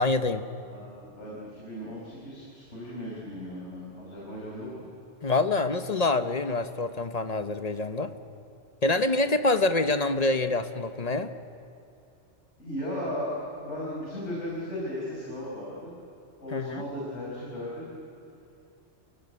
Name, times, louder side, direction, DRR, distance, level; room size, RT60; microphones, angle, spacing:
voice 1, 0.0-0.5 5.2-8.1 8.8-11.3 16.5-16.8, left 2 dB, 35° left, 9 dB, 0.9 m, -26 dB
voice 2, 0.6-4.9 12.6-16.0 16.4-17.9, left 1 dB, 75° left, -5 dB, 5.6 m, -36 dB
28.0 x 17.0 x 9.6 m, 2.5 s
omnidirectional pair, 1.2 m